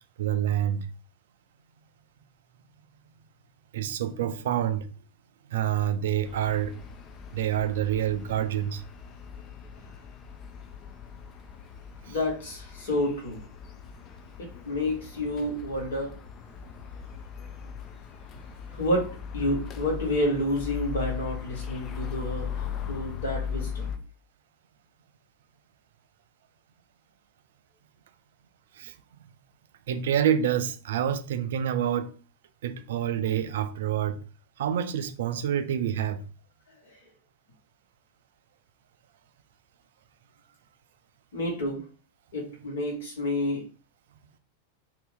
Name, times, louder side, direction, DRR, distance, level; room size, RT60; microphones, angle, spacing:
voice 1, 0.2-0.9 3.7-4.9 5.5-6.7 7.3-8.8 12.1-12.2 28.8-28.9 29.9-32.1 32.6-34.2 34.6-36.2, right 10 dB, 60° right, 0.4 m, -27 dB
sound 1, 6.2-24.0, left 7 dB, 30° left, 0.4 m, -39 dB
voice 2, 12.0-13.4 14.6-16.1 18.7-19.1 19.3-23.9 41.3-41.8 42.3-43.6, left 1 dB, 60° left, 1.4 m, -29 dB
2.7 x 2.5 x 3.4 m
figure-of-eight pair, 90°, 0 cm